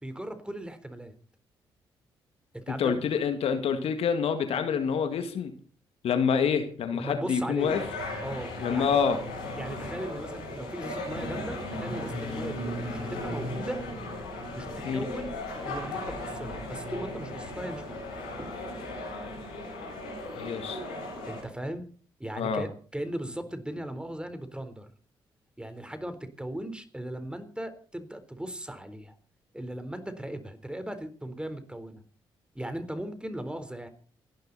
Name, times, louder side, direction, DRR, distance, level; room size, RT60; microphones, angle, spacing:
voice 1, 0.0-1.1 2.5-3.0 6.9-7.7 8.2-8.9 9.6-13.8 14.5-15.4 15.6-18.1 18.4-18.5 21.2-21.8 22.2-24.9 25.6-29.1 29.5-32.0 32.5-33.9, right 1 dB, 10° right, 10 dB, 3.9 m, -38 dB
voice 2, 2.7-5.5 6.0-7.8 8.6-9.2 14.8-15.0 20.3-20.9 22.4-22.7, left 6 dB, 65° left, 8 dB, 2.0 m, -27 dB
sound 1, 7.6-21.4, left 1 dB, 85° left, 7.8 m, -36 dB
28.5 x 11.5 x 4.2 m, 0.43 s
hypercardioid pair, 40°, 11 cm